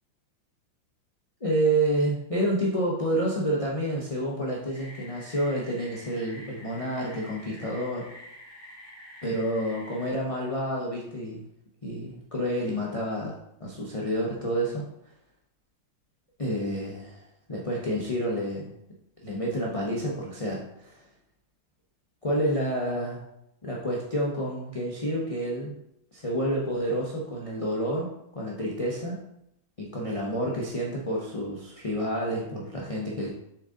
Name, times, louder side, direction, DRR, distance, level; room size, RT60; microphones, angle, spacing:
voice 1, 1.4-8.1 9.2-11.5 11.8-13.3 13.6-14.9 16.4-17.2 17.5-18.7 19.2-21.1 22.2-23.2 23.6-25.7 26.1-29.2 29.8-33.3, right 1 dB, 50° left, -4 dB, 0.4 m, -29 dB
sound 1, 4.7-10.1, left 1 dB, 20° left, 2.0 m, -47 dB
7.0 x 3.9 x 3.7 m, 0.79 s
omnidirectional pair, 2.1 m